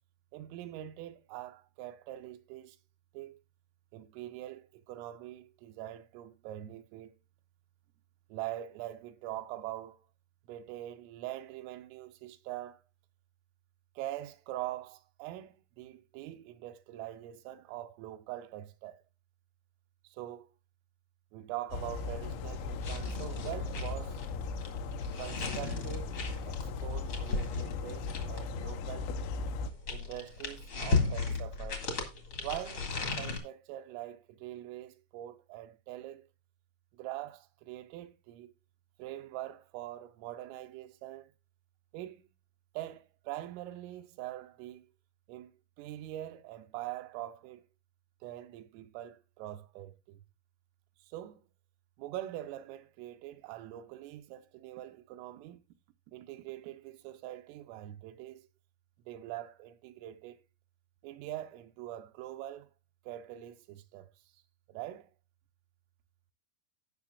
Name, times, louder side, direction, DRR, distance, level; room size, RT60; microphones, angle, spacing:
voice 1, 0.3-2.8 3.1-3.4 3.9-7.2 8.3-10.0 10.5-12.8 14.0-19.0 20.0-20.5 21.3-24.2 25.2-29.3 29.9-31.9 32.4-36.3 36.9-38.5 39.0-41.3 41.9-42.3 42.7-44.9 45.3-47.7 48.2-50.2 51.0-51.4 52.0-55.6 56.1-58.5 59.1-60.4 61.0-62.7 63.0-64.1 64.7-65.1, right 14 dB, 90° right, 3.3 m, -43 dB
sound 1, 21.7-29.7, left 4 dB, 85° left, 3.5 m, -37 dB
sound 2, 22.8-28.6 29.4-33.4, left 4 dB, 65° left, 1.2 m, -35 dB
17.5 x 5.9 x 2.5 m
omnidirectional pair, 5.8 m